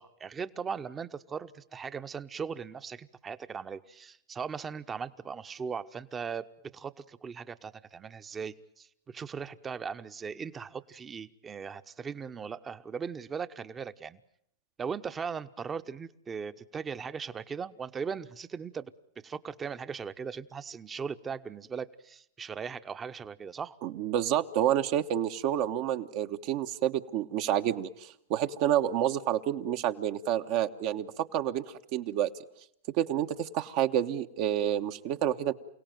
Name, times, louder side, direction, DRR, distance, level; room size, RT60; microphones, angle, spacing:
voice 1, 0.0-6.5 6.7-14.2 14.8-18.9 19.2-23.8, right 6 dB, 20° right, 13 dB, 1.0 m, -38 dB
voice 2, 23.8-31.6 31.9-32.3 33.0-35.5, right 11 dB, 50° right, 7 dB, 1.2 m, -29 dB
29.0 x 17.5 x 9.3 m, 0.72 s
hypercardioid pair, 120°, 0 cm